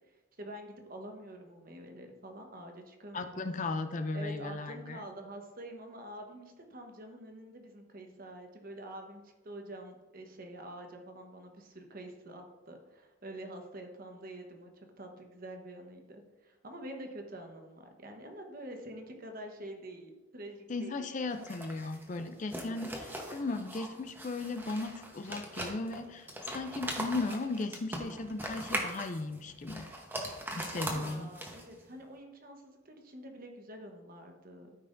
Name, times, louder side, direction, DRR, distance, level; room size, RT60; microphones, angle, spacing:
voice 1, 0.1-3.5 4.1-21.0 30.7-34.7, right 1 dB, 45° right, 3 dB, 1.0 m, -47 dB
voice 2, 3.1-5.0 20.7-29.9 30.6-31.3, left 3 dB, 35° left, 9 dB, 0.4 m, -36 dB
sound 1, 21.3-31.8, right 1 dB, 10° right, 0.9 m, -40 dB
13.0 x 5.6 x 2.6 m, 1.2 s
head